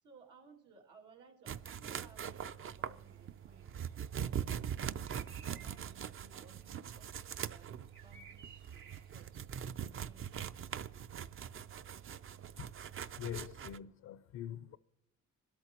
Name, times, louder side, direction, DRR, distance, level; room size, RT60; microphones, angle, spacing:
voice 1, 0.0-3.8 4.3-5.2 5.5-7.7 8.0-9.3 9.8-10.7, right 5 dB, 85° right, 2.5 m, -61 dB
sound 1, 1.5-13.8, right 8 dB, 45° right, 0.5 m, -42 dB
sound 2, 3.0-9.5, right 5 dB, 70° right, 4.0 m, -60 dB
voice 2, 12.5-14.8, left 10 dB, 65° left, 0.5 m, -45 dB
23.5 x 13.0 x 2.9 m
cardioid pair, 90°, 30 cm